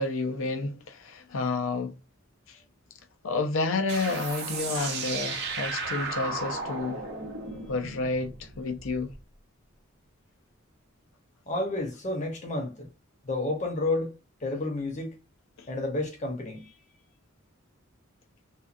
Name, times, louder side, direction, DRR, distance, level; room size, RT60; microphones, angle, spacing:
voice 1, 0.0-1.9 2.5-2.6 3.2-7.0 7.7-9.2 15.6-15.7, left 3 dB, 80° left, 0.5 m, -30 dB
sound 1, 3.9-9.2, right 4 dB, 55° right, 0.6 m, -35 dB
voice 2, 11.5-12.9 13.2-14.2 14.4-15.1 15.7-16.8, left 2 dB, 35° left, 0.8 m, -30 dB
2.7 x 2.3 x 2.4 m
head